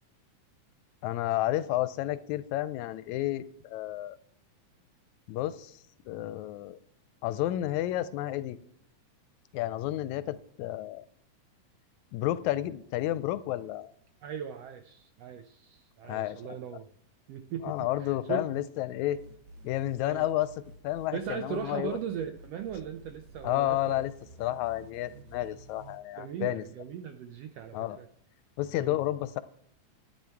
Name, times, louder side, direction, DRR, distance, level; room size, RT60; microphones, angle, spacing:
voice 1, 1.0-4.2 5.3-6.8 7.2-8.6 9.5-11.1 12.1-13.9 16.0-16.4 17.6-19.2 19.6-20.5 20.8-22.0 23.4-24.1 24.4-26.6 27.7-28.0 28.6-29.4, left 14 dB, 80° left, 15 dB, 1.8 m, -31 dB
voice 2, 14.2-16.9 17.3-18.5 20.0-20.3 21.1-24.0 26.2-28.1 28.8-29.0, right 8 dB, 80° right, 8 dB, 1.4 m, -38 dB
sound 1, 19.1-26.0, right 1 dB, 65° right, 2.6 m, -52 dB
12.0 x 9.3 x 4.5 m, 0.72 s
omnidirectional pair, 3.5 m